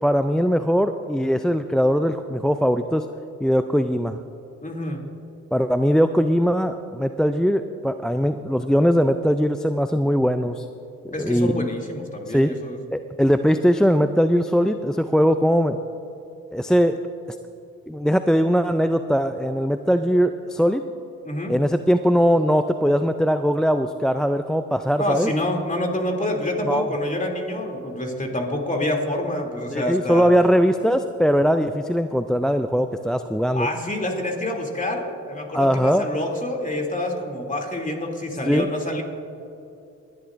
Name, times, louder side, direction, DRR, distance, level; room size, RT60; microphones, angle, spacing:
voice 1, 0.0-3.1 3.4-4.2 5.5-10.6 11.2-11.7 12.3-12.5 12.9-15.8 16.5-17.0 17.9-20.8 21.5-25.3 26.7-26.9 29.7-33.7 35.5-36.1 38.5-38.7, equal, ahead, 8 dB, 0.3 m, -20 dB
voice 2, 4.6-5.0 11.1-12.8 21.2-21.5 25.0-30.3 33.5-39.0, left 1 dB, 20° left, 1 dB, 2.8 m, -27 dB
21.0 x 11.5 x 2.6 m, 2.7 s
supercardioid pair, 60°, 35 cm